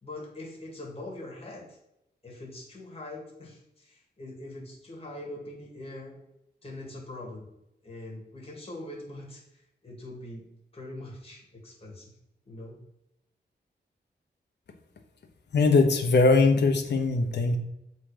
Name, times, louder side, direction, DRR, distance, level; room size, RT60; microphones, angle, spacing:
voice 1, 0.0-1.8 2.2-6.2 6.6-7.5 7.8-12.1 12.5-12.8, left 1 dB, 35° left, -1 dB, 2.2 m, -42 dB
voice 2, 15.5-17.6, left 3 dB, 75° left, 4 dB, 1.0 m, -21 dB
7.4 x 4.0 x 5.0 m, 0.83 s
wide cardioid pair, 130°, 18 cm